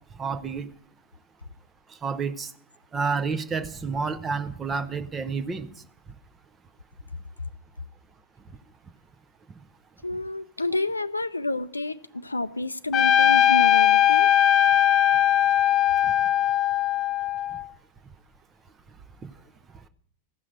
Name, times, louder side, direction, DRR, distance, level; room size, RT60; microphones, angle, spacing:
voice 1, 0.1-0.7 1.9-2.5 2.9-5.8 16.0-16.1 19.2-19.3, right 5 dB, 20° right, 0.8 m, -30 dB
voice 2, 10.0-14.3, left 2 dB, 80° left, 0.4 m, -29 dB
Trumpet, 12.9-17.6, left 10 dB, 35° left, 0.5 m, -20 dB
15.0 x 6.1 x 7.7 m
figure-of-eight pair, 90°, 0 cm